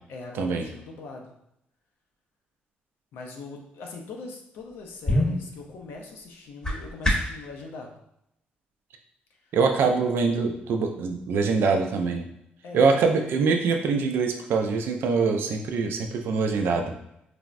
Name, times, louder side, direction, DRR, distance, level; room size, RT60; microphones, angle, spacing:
voice 1, 0.1-1.3 3.1-8.0 9.4-10.1 12.6-13.1, left 3 dB, 85° left, 1 dB, 0.5 m, -41 dB
sound 1, 4.6-7.5, left 1 dB, 20° left, 0.8 m, -28 dB
voice 2, 9.5-12.2 12.7-16.9, right 4 dB, 75° right, 4 dB, 0.4 m, -24 dB
3.2 x 2.0 x 2.4 m, 0.79 s
cardioid pair, 75°, 4 cm